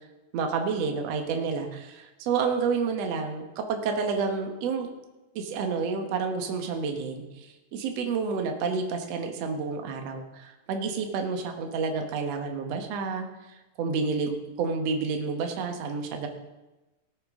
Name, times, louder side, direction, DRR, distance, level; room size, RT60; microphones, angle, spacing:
voice 1, 0.3-4.9 5.3-16.3, right 5 dB, 70° right, 4 dB, 1.6 m, -30 dB
18.0 x 9.2 x 3.7 m, 1.1 s
omnidirectional pair, 4.7 m